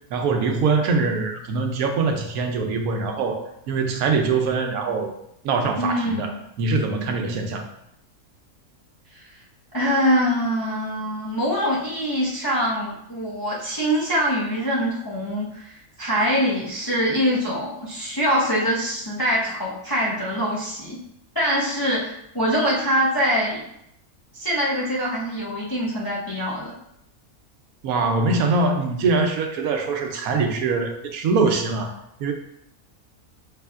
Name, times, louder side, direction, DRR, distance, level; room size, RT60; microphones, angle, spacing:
voice 1, 0.1-3.4 3.7-5.1 5.4-6.3 6.6-7.7 27.8-31.9 32.2-32.3, right 4 dB, 85° right, 5 dB, 1.1 m, -23 dB
voice 2, 5.8-6.3 9.1-9.2 9.7-21.0 21.3-23.6 24.3-26.7, equal, 30° left, -5 dB, 0.4 m, -24 dB
5.6 x 3.3 x 2.4 m, 0.77 s
omnidirectional pair, 1.5 m